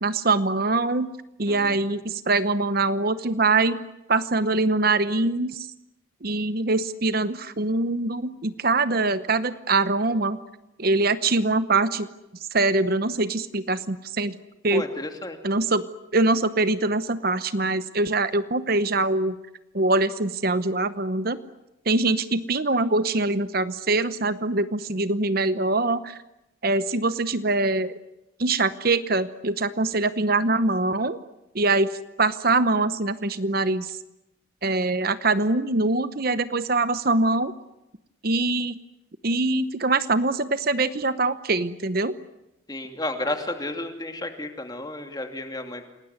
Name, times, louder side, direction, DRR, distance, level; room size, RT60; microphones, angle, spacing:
voice 1, 0.0-1.1 1.4-3.8 4.1-5.7 6.2-10.4 10.8-12.1 12.5-14.4 14.6-14.9 15.4-15.8 16.1-19.4 19.7-21.4 21.9-26.2 26.6-27.9 28.4-31.2 31.5-34.0 34.6-37.5 38.2-38.8 39.2-42.1, right 3 dB, 45° right, 12 dB, 0.9 m, -23 dB
voice 2, 14.7-15.4 42.7-45.9, left 1 dB, 20° left, 5 dB, 2.7 m, -32 dB
28.5 x 19.5 x 9.6 m, 0.91 s
head